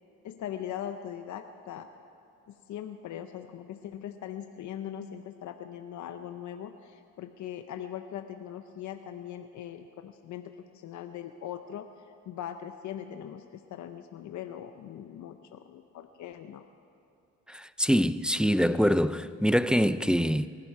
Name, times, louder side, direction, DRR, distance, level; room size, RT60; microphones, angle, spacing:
voice 1, 0.2-1.9 2.5-11.9 12.3-16.6, left 10 dB, 70° left, 0.8 m, -40 dB
voice 2, 17.5-20.5, equal, 5° right, 0.4 m, -24 dB
24.0 x 11.5 x 4.7 m
cardioid pair, 90°, 30 cm